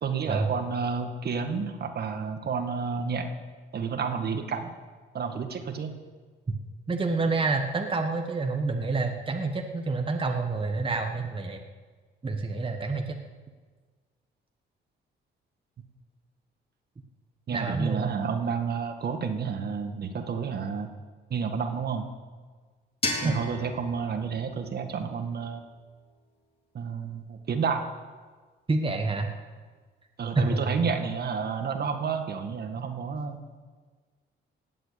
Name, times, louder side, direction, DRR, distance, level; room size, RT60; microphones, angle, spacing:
voice 1, 0.0-3.3 3.7-4.7 5.1-5.9 17.5-20.9 21.3-22.1 23.2-25.6 26.7-27.9 30.2-33.4, right 5 dB, 55° right, 6 dB, 1.8 m, -30 dB
voice 2, 6.9-11.6 12.2-13.2 17.5-18.1 23.2-23.4 28.7-29.3 30.3-30.7, right 3 dB, 25° right, 3 dB, 1.4 m, -28 dB
sound 1, 23.0-25.9, left 2 dB, 30° left, 3.6 m, -36 dB
18.5 x 7.8 x 8.4 m, 1.5 s
cardioid pair, 90°, 20 cm